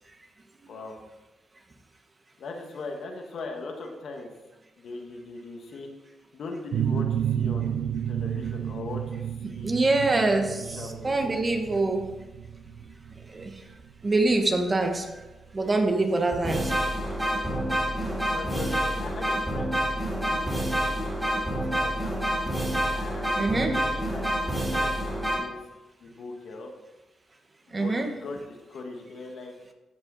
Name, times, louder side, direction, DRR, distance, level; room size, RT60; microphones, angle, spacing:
voice 1, 2.4-4.3 4.8-5.9 6.3-7.8 8.0-9.8 10.3-11.4 18.3-19.8 20.1-20.5 20.8-22.1 22.9-25.6 26.0-26.7 27.7-29.5, left 3 dB, 70° left, 2 dB, 1.6 m, -40 dB
sound 1, 6.7-16.1, right 9 dB, 80° right, 0.7 m, -31 dB
voice 2, 9.6-12.1 13.3-13.5 14.0-15.2 15.5-16.7 23.3-23.8 27.7-28.1, right 2 dB, 30° right, 4 dB, 1.4 m, -25 dB
sound 2, 15.7-15.8 16.3-25.4, equal, 10° right, 3.5 m, -28 dB
14.5 x 5.6 x 4.1 m, 1.1 s
cardioid pair, 90°, 0 cm